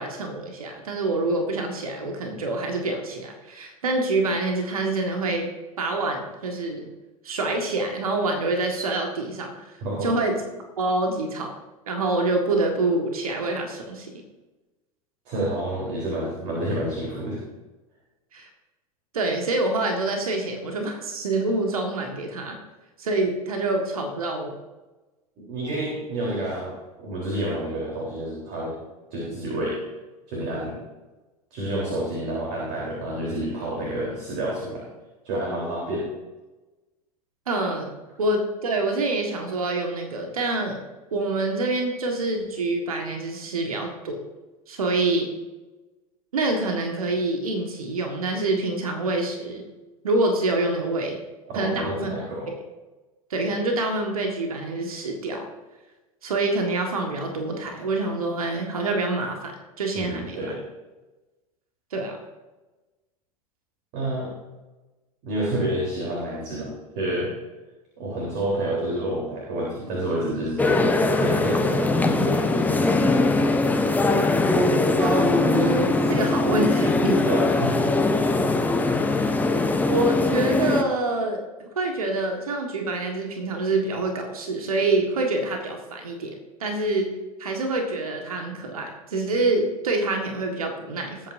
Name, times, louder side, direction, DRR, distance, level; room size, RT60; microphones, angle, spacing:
voice 1, 0.0-5.5 5.8-6.9 7.2-9.8 10.0-10.4 10.8-11.6 11.9-14.1 18.3-18.5 19.1-22.6 23.0-24.6 37.5-37.9 38.2-40.8 41.1-44.2 44.7-45.3 46.3-49.6 50.0-51.2 51.5-52.1 53.3-55.5 56.2-60.5 61.9-62.2 75.0-77.2 79.9-87.1 87.4-91.2, right 2 dB, 70° right, 3 dB, 1.7 m, -26 dB
voice 2, 9.8-10.1 15.3-17.4 25.4-28.7 29.1-29.8 30.3-30.8 31.5-34.8 35.2-36.1 51.5-52.5 59.9-60.6 63.9-64.3 65.2-67.3 68.0-70.9 71.2-73.0 77.3-77.9, right 1 dB, 45° right, -4 dB, 3.9 m, -29 dB
sound 1, 70.6-80.8, left 2 dB, 10° left, 0.9 m, -21 dB
20.0 x 8.8 x 2.7 m, 1.1 s
figure-of-eight pair, 80°, 19 cm